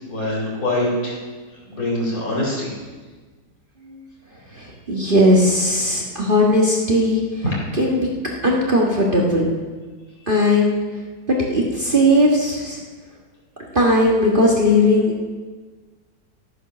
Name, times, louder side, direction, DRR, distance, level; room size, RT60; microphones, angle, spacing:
voice 1, 0.1-1.2 1.7-2.7 7.4-7.5, left 1 dB, 55° left, -4 dB, 4.1 m, -23 dB
voice 2, 4.5-7.4 7.7-8.1 8.4-9.5 10.3-10.8 11.3-12.8 13.7-15.1, left 1 dB, 30° right, -2 dB, 1.7 m, -18 dB
13.5 x 9.2 x 6.2 m, 1.4 s
omnidirectional pair, 1.8 m